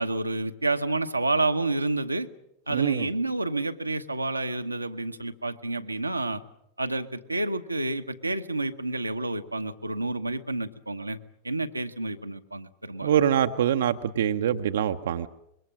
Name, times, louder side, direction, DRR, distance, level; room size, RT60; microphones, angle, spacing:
voice 1, 0.0-2.3 2.7-6.4 6.8-11.2 11.4-13.1, right 2 dB, 85° right, 5 dB, 1.1 m, -29 dB
voice 2, 2.7-3.1 13.0-15.3, right 9 dB, 60° right, 7 dB, 0.8 m, -24 dB
25.0 x 22.5 x 7.6 m, 0.80 s
figure-of-eight pair, 90°, 0 cm